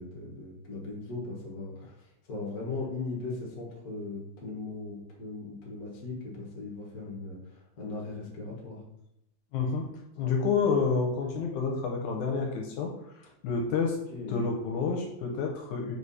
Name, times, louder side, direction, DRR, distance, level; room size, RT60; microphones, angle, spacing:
voice 1, 0.0-8.8 14.1-14.4, left 3 dB, 40° left, -3 dB, 1.6 m, -38 dB
voice 2, 9.5-13.0 13.4-14.0 14.3-16.0, left 5 dB, 80° left, 1 dB, 2.1 m, -29 dB
4.8 x 4.8 x 4.2 m, 0.86 s
omnidirectional pair, 3.6 m